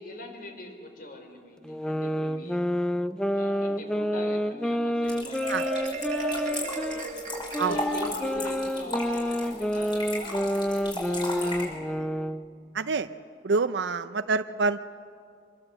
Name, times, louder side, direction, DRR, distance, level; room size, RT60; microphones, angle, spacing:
voice 1, 0.0-2.8 3.3-7.3 7.6-12.1, left 1 dB, 50° left, 4 dB, 4.1 m, -42 dB
sound 1, 1.6-7.0 7.5-12.4, equal, 5° left, 0.5 m, -29 dB
sound 2, 5.0-11.6, left 1 dB, 25° left, 6.1 m, -35 dB
Marimba xylophone, 5.4-8.2, right 2 dB, 40° right, 1.6 m, -34 dB
voice 2, 12.7-13.1 13.4-14.8, right 4 dB, 75° right, 10 dB, 0.5 m, -26 dB
25.0 x 22.5 x 8.1 m, 2.3 s
head